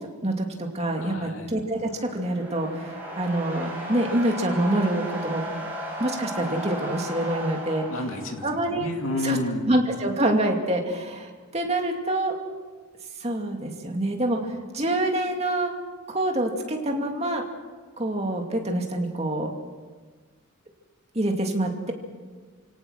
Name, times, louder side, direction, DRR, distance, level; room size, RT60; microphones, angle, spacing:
voice 1, 0.2-5.4 6.0-7.9 8.4-8.9 9.2-9.4 9.6-12.3 13.2-14.4 14.7-15.7 16.1-17.4 18.0-19.5 21.1-21.9, right 1 dB, 30° right, 2 dB, 2.5 m, -26 dB
voice 2, 1.0-1.5 7.9-9.7, left 1 dB, 70° left, 3 dB, 2.7 m, -31 dB
sound 1, 1.6-8.7, right 1 dB, 10° right, 5.8 m, -35 dB
29.0 x 18.0 x 6.4 m, 1.5 s
head